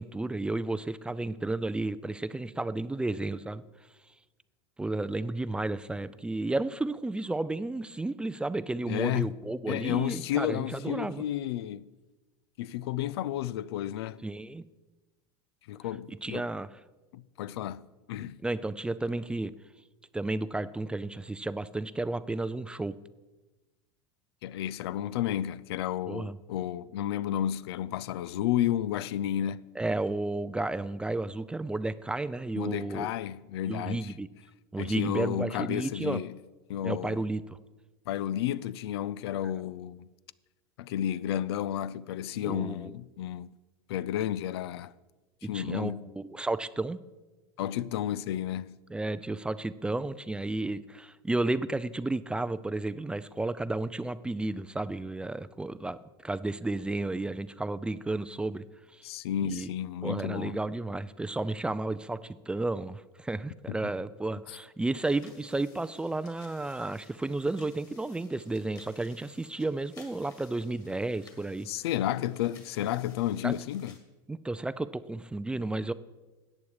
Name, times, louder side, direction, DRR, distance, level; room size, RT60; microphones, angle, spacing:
voice 1, 0.0-3.6 4.8-11.2 14.2-14.6 16.1-16.8 18.4-19.5 20.1-23.0 26.1-26.4 29.8-33.1 33.6-34.3 34.7-36.2 36.8-37.6 42.4-42.9 45.4-47.0 48.9-58.6 58.9-59.1 59.4-59.7 60.0-71.7 73.4-73.5 74.3-75.9, right 2 dB, 5° right, 0.3 m, -32 dB
voice 2, 8.9-9.4 9.7-11.9 12.6-14.2 15.7-16.5 17.1-18.4 24.4-29.7 32.5-34.1 34.8-36.3 36.7-37.2 38.1-40.1 40.8-43.6 43.9-44.9 45.4-46.1 47.6-48.8 59.0-60.6 63.7-63.8 71.7-73.9, left 11 dB, 85° left, 0.4 m, -32 dB
sound 1, 64.9-74.0, left 4 dB, 30° left, 2.2 m, -58 dB
14.0 x 8.7 x 4.8 m
supercardioid pair, 120°, 13 cm